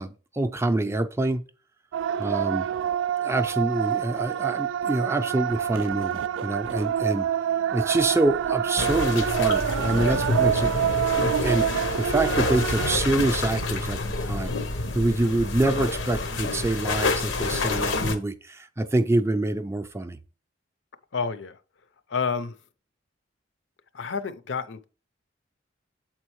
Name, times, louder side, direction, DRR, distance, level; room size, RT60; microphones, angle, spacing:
voice 1, 0.0-1.4 2.2-2.7 3.2-7.3 7.7-14.5 14.9-20.2, right 2 dB, 15° right, 0.4 m, -26 dB
sound 1, 1.9-13.0, right 9 dB, 80° right, 0.3 m, -27 dB
sound 2, 8.8-18.2, left 3 dB, 90° left, 0.9 m, -28 dB
voice 2, 21.1-21.6 22.1-22.5 23.9-24.8, left 5 dB, 65° left, 0.5 m, -29 dB
7.5 x 4.3 x 3.0 m
head